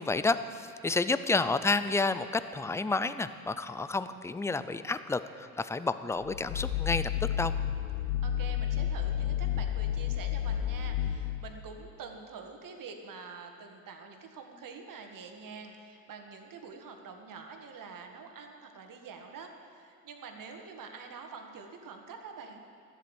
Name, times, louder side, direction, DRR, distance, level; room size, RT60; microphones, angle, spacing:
voice 1, 0.0-7.1 7.4-7.5, left 3 dB, 5° left, 13 dB, 0.4 m, -30 dB
sound 1, 6.2-11.7, left 10 dB, 75° left, 0.7 m, -31 dB
voice 2, 8.0-22.7, right 5 dB, 45° right, 4 dB, 1.8 m, -46 dB
13.5 x 7.9 x 8.1 m, 2.3 s
hypercardioid pair, 60°, 45 cm